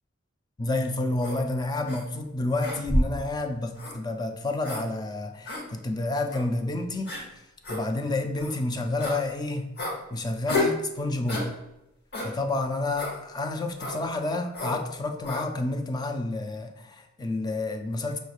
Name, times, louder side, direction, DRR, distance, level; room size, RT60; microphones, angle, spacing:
voice 1, 0.6-7.1 7.7-9.7 10.1-11.5 12.2-18.2, left 2 dB, 20° left, 6 dB, 0.3 m, -29 dB
sound 1, 1.2-1.4 1.9-2.0 2.6-3.2 3.8-4.0 4.6-4.8 5.5-5.6 6.3-6.4 7.1-7.2 7.6-7.8 8.4-8.6 9.0-9.2 9.8-10.0 10.5-10.8 11.3-11.5 12.1-12.3 13.0-13.2 13.8-14.0 14.5-14.8 15.2-15.4, left 1 dB, 55° left, 0.9 m, -29 dB
5.4 x 3.1 x 2.3 m, 0.89 s
head